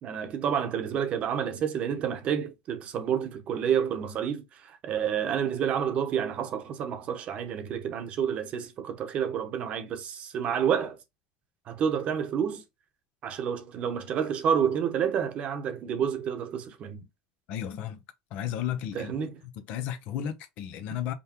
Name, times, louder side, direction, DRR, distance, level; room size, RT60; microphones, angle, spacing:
voice 1, 0.0-11.0 11.7-12.6 13.2-17.0 18.9-19.4, right 8 dB, 50° right, 0.9 m, -29 dB
voice 2, 17.5-18.0 18.3-19.1 19.7-21.1, left 10 dB, 65° left, 0.7 m, -33 dB
5.2 x 2.3 x 2.9 m
supercardioid pair, 110°, 3 cm